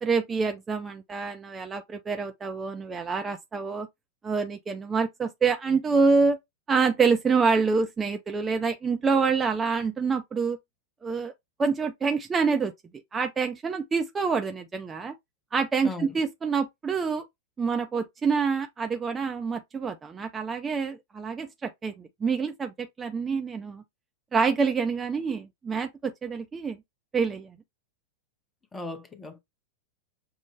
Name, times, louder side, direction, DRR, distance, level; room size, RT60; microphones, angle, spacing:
voice 1, 0.0-3.9 4.2-6.4 6.7-10.6 11.0-11.3 11.6-12.7 13.1-15.1 15.5-17.2 17.6-23.8 24.3-26.8 27.1-27.6, right 5 dB, 20° right, 0.4 m, -26 dB
voice 2, 28.7-29.4, left 3 dB, 15° left, 0.8 m, -37 dB
6.2 x 2.1 x 3.1 m
figure-of-eight pair, 90°, 0 cm